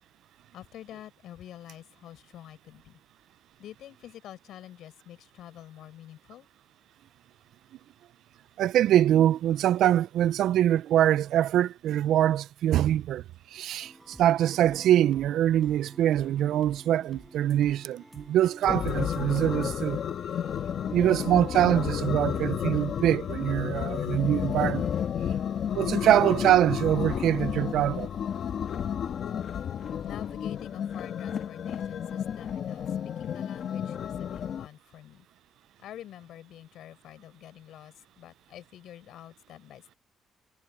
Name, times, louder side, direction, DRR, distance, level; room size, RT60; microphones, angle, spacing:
voice 1, 0.5-3.0 3.6-6.5 30.0-35.3 35.8-40.0, left 12 dB, 80° left, 5.6 m, -47 dB
voice 2, 8.6-13.2 13.5-20.0 20.9-24.9 25.7-28.1, right 12 dB, 80° right, 0.4 m, -24 dB
sound 1, 13.8-21.2, right 1 dB, 5° right, 5.4 m, -51 dB
sound 2, 18.7-34.7, left 8 dB, 60° left, 1.5 m, -31 dB
cardioid pair, 90°, 0 cm